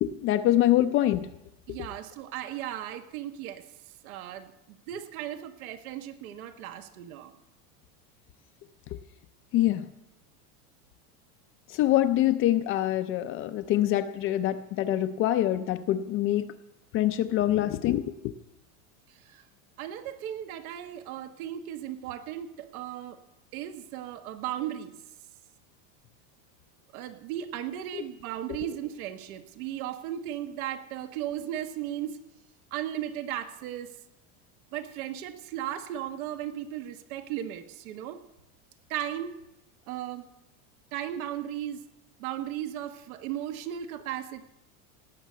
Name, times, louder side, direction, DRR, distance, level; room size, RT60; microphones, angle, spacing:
voice 1, 0.0-1.3 9.5-9.9 11.7-16.5 16.9-18.1, left 13 dB, 30° left, 10 dB, 0.5 m, -25 dB
voice 2, 1.7-7.4 19.1-19.5 19.8-23.2 23.5-25.0 26.9-32.2 32.7-34.0 34.7-38.2 38.9-39.4 39.9-40.2 40.9-41.8 42.2-44.5, right 11 dB, 75° right, 8 dB, 1.4 m, -36 dB
18.0 x 6.5 x 8.3 m, 0.91 s
supercardioid pair, 150°, 43 cm